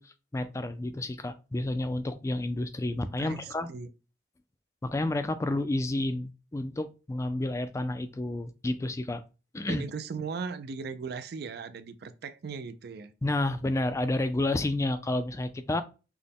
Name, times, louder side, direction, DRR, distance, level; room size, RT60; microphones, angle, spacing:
voice 1, 0.0-3.7 4.8-9.2 9.5-9.9 13.2-15.8, left 2 dB, 15° left, 0.3 m, -30 dB
voice 2, 9.7-13.1, right 5 dB, 55° right, 0.4 m, -38 dB
6.0 x 2.1 x 3.5 m
head